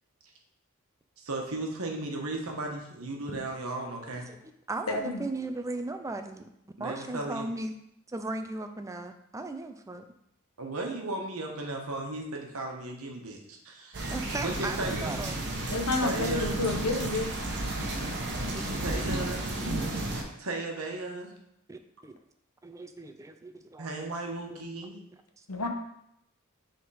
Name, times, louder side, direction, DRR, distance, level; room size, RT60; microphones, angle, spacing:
voice 1, 1.2-4.3 6.8-7.4 10.6-14.0 14.4-15.3 16.0-16.6 18.8-19.5 20.1-21.3 23.8-25.0, right 2 dB, 75° right, 1 dB, 1.1 m, -36 dB
voice 2, 4.3-6.5 6.8-7.7 8.1-10.0 14.1-15.4 17.2-17.7 18.5-18.8 19.4-20.1 21.7-22.2 22.6-24.0 24.5-24.7 25.4-25.5, right 2 dB, 15° right, 7 dB, 0.4 m, -38 dB
voice 3, 4.9-5.2 15.7-17.3 25.5-25.7, left 2 dB, 90° left, 4 dB, 0.9 m, -29 dB
sound 1, 13.9-20.2, right 2 dB, 55° right, 1.0 m, -32 dB
5.9 x 3.6 x 4.8 m, 0.77 s
head